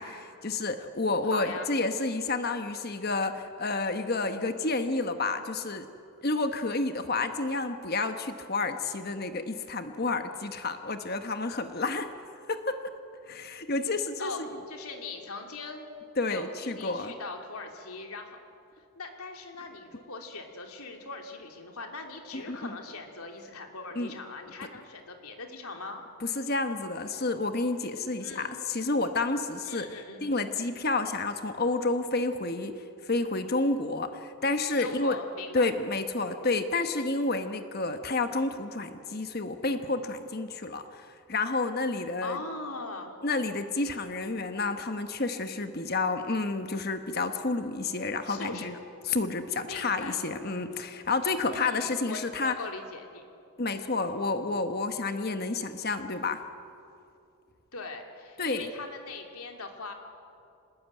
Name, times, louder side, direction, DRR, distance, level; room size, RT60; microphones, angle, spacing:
voice 1, 0.0-5.9 6.2-12.1 12.5-12.8 13.3-14.5 16.2-17.1 22.3-22.8 23.9-24.1 26.3-29.9 30.2-35.2 35.5-42.4 43.2-48.7 49.0-52.5 53.6-56.4 58.4-58.7, left 3 dB, 45° left, 8 dB, 1.2 m, -30 dB
voice 2, 1.3-1.7 14.2-14.4 14.7-15.8 16.3-18.4 18.9-26.0 28.2-28.6 29.7-30.2 34.8-35.7 42.2-43.1 48.3-48.7 49.7-50.2 51.5-53.2 57.7-59.9, left 3 dB, 80° left, 3 dB, 3.0 m, -40 dB
25.5 x 20.5 x 9.1 m, 2.6 s
head